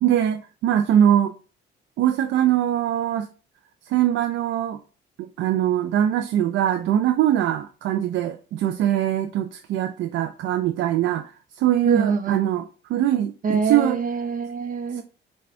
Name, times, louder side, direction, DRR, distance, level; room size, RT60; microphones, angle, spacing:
voice 1, 0.0-1.3 2.0-3.3 3.9-4.8 5.2-11.2 11.6-12.6 12.9-14.0, right 11 dB, 75° right, 0.4 m, -22 dB
voice 2, 11.9-12.5 13.4-15.0, right 5 dB, 45° right, 0.7 m, -25 dB
4.2 x 2.3 x 4.3 m
cardioid pair, 90°, 20 cm